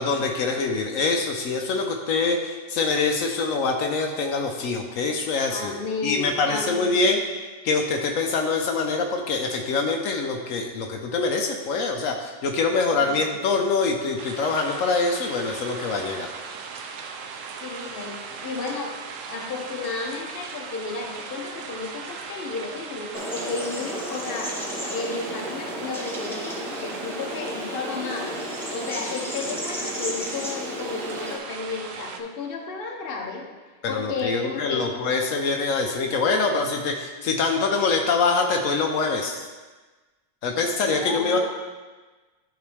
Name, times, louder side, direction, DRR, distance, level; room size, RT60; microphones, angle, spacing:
voice 1, 0.0-5.8 6.0-7.2 7.6-16.3 33.8-39.5 40.4-41.5, left 4 dB, 80° left, 2 dB, 1.1 m, -24 dB
voice 2, 5.5-7.1 12.9-13.4 17.6-18.9 19.3-28.4 28.7-33.5 33.9-34.9 40.8-41.5, left 4 dB, 50° left, 1 dB, 1.0 m, -33 dB
sound 1, 14.2-32.2, right 5 dB, 75° right, 1.0 m, -38 dB
sound 2, 23.1-31.4, equal, ahead, 0.6 m, -33 dB
11.5 x 3.9 x 3.3 m, 1.3 s
omnidirectional pair, 1.4 m